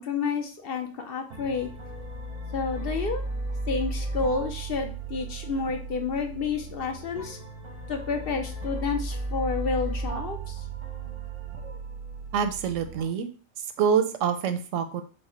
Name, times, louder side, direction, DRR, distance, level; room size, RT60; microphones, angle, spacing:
voice 1, 0.0-1.7 2.5-3.2 3.7-7.4 7.9-10.6, left 5 dB, 60° left, 5 dB, 0.7 m, -30 dB
sound 1, 1.3-13.0, right 2 dB, 35° right, 0.7 m, -35 dB
voice 2, 12.3-13.3 13.6-15.0, right 7 dB, 85° right, 8 dB, 0.9 m, -26 dB
4.4 x 2.1 x 4.2 m, 0.37 s
omnidirectional pair, 1.3 m